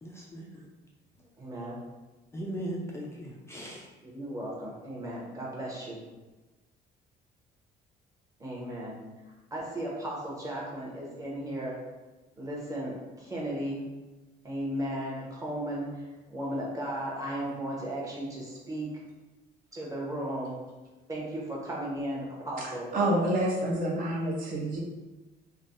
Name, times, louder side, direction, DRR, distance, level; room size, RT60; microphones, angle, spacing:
voice 1, 0.0-0.7 2.3-3.9, right 1 dB, 15° left, -2 dB, 0.3 m, -38 dB
voice 2, 1.4-1.8 4.0-6.1 8.4-9.0 9.5-11.8 12.4-13.9 14.4-18.9 19.7-20.6 21.1-22.9, right 1 dB, 20° right, -4 dB, 0.9 m, -35 dB
voice 3, 22.6-24.8, right 1 dB, 55° right, -3 dB, 0.7 m, -28 dB
3.3 x 2.1 x 2.5 m, 1.2 s
cardioid pair, 110°, 17 cm